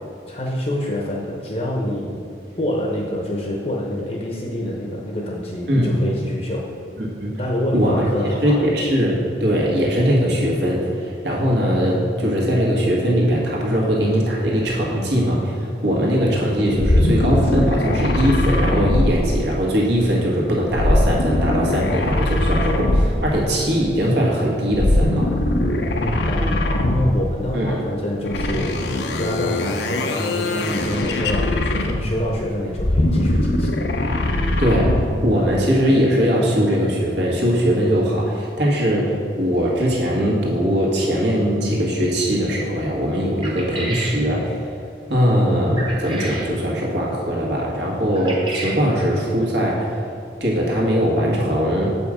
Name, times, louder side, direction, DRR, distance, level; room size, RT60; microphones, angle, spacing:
voice 1, 0.3-2.3 2.6-6.7 7.4-8.7 26.0-33.8, left 1 dB, 35° left, -1 dB, 0.8 m, -26 dB
voice 2, 7.0-7.4 7.7-8.1 8.4-25.3 27.5-27.8 34.6-44.6 45.1-50.0 50.4-52.0, equal, 70° right, -3 dB, 1.6 m, -20 dB
sound 1, 16.8-19.8 20.7-23.4 24.7-27.3 28.2-32.2 32.7-35.2, left 1 dB, 75° left, 0.7 m, -21 dB
sound 2, 43.4-44.2 45.8-46.5 48.1-48.8, right 2 dB, 25° right, 1.1 m, -30 dB
7.5 x 5.3 x 4.9 m, 2.5 s
head